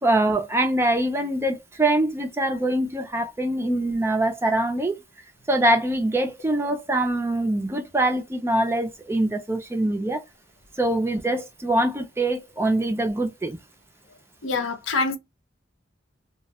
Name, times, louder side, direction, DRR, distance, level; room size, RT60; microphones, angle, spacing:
voice 1, 0.0-5.0 5.5-10.2 10.8-13.6, right 1 dB, 15° right, 0.4 m, -23 dB
voice 2, 14.4-15.2, left 3 dB, 75° left, 0.6 m, -25 dB
2.2 x 2.0 x 2.8 m
head